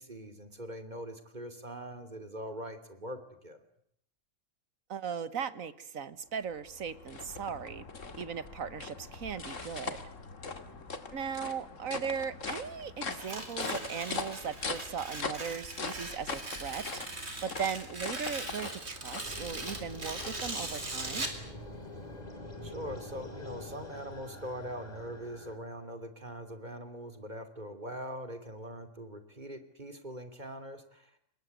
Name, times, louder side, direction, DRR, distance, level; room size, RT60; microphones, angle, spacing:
voice 1, 0.0-3.6 10.4-10.8 22.6-31.1, equal, 35° right, 9 dB, 3.0 m, -42 dB
voice 2, 4.9-7.8 8.2-10.0 11.1-21.3, right 7 dB, 80° right, 15 dB, 1.7 m, -38 dB
sound 1, 6.4-20.9, left 4 dB, 70° left, 2.4 m, -41 dB
Tearing, 13.1-21.4, right 2 dB, 50° right, 4.1 m, -40 dB
sound 2, 19.2-25.6, left 1 dB, 30° left, 3.8 m, -45 dB
25.5 x 21.5 x 9.4 m, 0.68 s
omnidirectional pair, 1.4 m